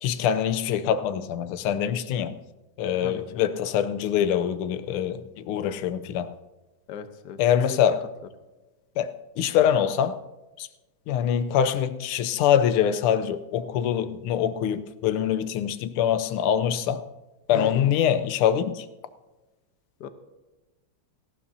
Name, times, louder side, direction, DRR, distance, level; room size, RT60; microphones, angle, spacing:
voice 1, 0.0-2.4 2.8-6.3 7.4-8.1 9.0-10.2 10.6-10.7 11.1-17.1 17.5-18.9, left 9 dB, 90° left, 1.5 m, -24 dB
voice 2, 6.9-7.4 7.7-7.8 20.0-20.1, left 7 dB, 60° left, 1.3 m, -37 dB
18.0 x 15.0 x 2.7 m
omnidirectional pair, 2.3 m